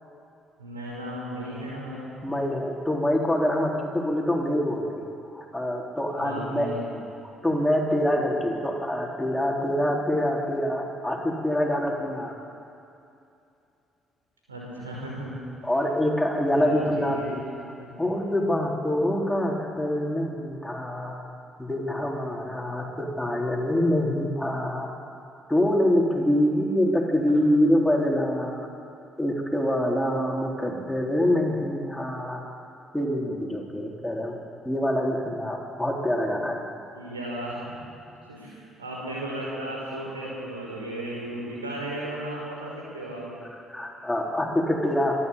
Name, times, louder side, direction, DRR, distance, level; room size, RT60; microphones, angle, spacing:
voice 1, 0.6-2.1 6.2-6.9 14.5-15.3 16.6-17.9 36.9-37.6 38.3-43.4, right 1 dB, 90° right, -4 dB, 5.5 m, -35 dB
voice 2, 2.2-6.7 7.2-12.3 15.6-17.4 18.0-21.2 21.6-24.9 25.5-28.7 29.2-32.4 32.9-34.4 34.6-36.6 43.7-45.2, left 1 dB, 5° left, -1 dB, 4.1 m, -25 dB
26.0 x 12.5 x 8.6 m, 2.7 s
figure-of-eight pair, 50°, 0 cm